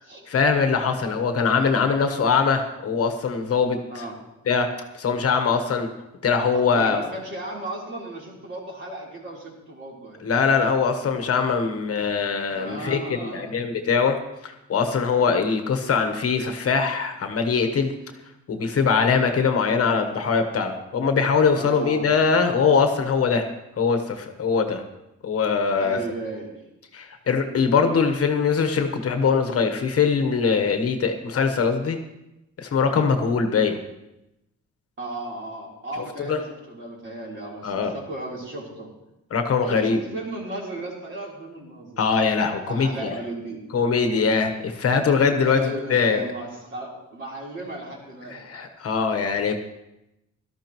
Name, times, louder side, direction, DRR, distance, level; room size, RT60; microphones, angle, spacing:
voice 1, 0.3-4.0 4.5-4.7 4.9-5.9 6.2-7.0 10.2-14.2 14.4-17.9 18.5-23.4 23.8-24.8 25.2-26.0 26.9-32.0 32.6-33.8 36.3-36.4 37.6-37.9 39.3-40.0 42.0-43.2 43.7-45.6 45.9-46.3 48.3-49.6, left 5 dB, 50° left, 6 dB, 1.2 m, -22 dB
voice 2, 6.5-10.2 12.6-13.5 21.6-22.4 25.8-26.5 35.0-38.9 39.6-42.0 42.7-43.6 45.4-48.4, right 1 dB, 40° right, -3 dB, 3.7 m, -35 dB
17.5 x 13.0 x 3.1 m, 0.91 s
cardioid pair, 140°, 30 cm